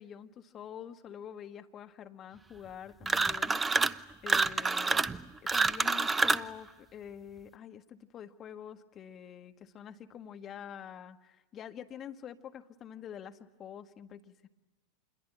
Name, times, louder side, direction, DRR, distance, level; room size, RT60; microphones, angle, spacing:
voice 1, 0.0-5.1 5.5-14.5, left 9 dB, 35° left, 6 dB, 1.8 m, -47 dB
sound 1, 3.0-4.0 4.3-6.5, right 4 dB, 15° right, 0.9 m, -27 dB
27.5 x 22.5 x 8.9 m, 1.1 s
figure-of-eight pair, 85°, 0 cm